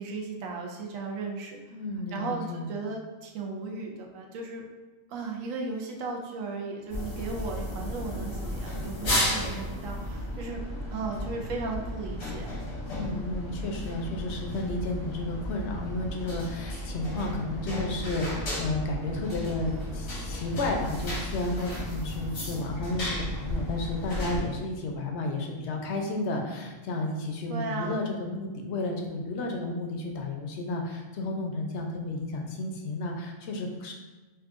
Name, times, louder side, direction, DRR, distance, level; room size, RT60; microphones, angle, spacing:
voice 1, 0.0-1.6 2.1-4.6 5.1-10.6 10.9-12.6 27.5-28.0, right 3 dB, 80° right, 1 dB, 1.0 m, -36 dB
voice 2, 1.7-2.7 12.9-33.9, left 2 dB, 65° left, 1 dB, 0.8 m, -32 dB
sound 1, 6.9-24.4, left 1 dB, 90° left, 1.5 m, -34 dB
5.4 x 2.3 x 2.4 m, 1.2 s
omnidirectional pair, 1.4 m